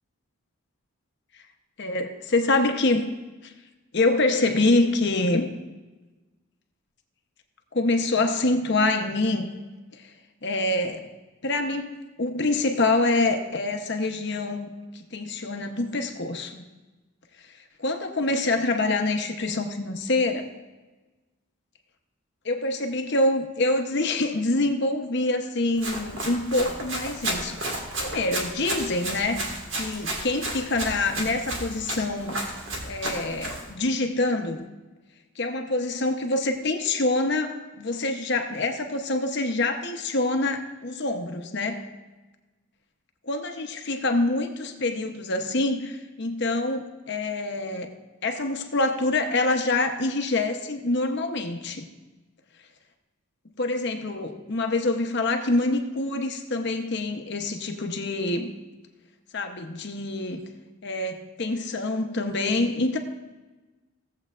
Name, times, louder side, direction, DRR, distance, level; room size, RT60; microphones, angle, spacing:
voice 1, 1.8-3.1 3.4-3.5 3.9-5.5 7.7-9.5 9.9-10.1 10.4-11.1 11.4-16.6 17.8-20.5 22.4-32.4 32.8-34.6 35.4-41.8 43.2-47.9 48.2-51.9 53.6-58.5 59.3-60.4 60.8-63.0, left 2 dB, 50° left, 5 dB, 0.9 m, -26 dB
Run, 25.8-33.7, right 1 dB, 60° right, 1.7 m, -33 dB
17.0 x 7.7 x 2.5 m, 1.2 s
head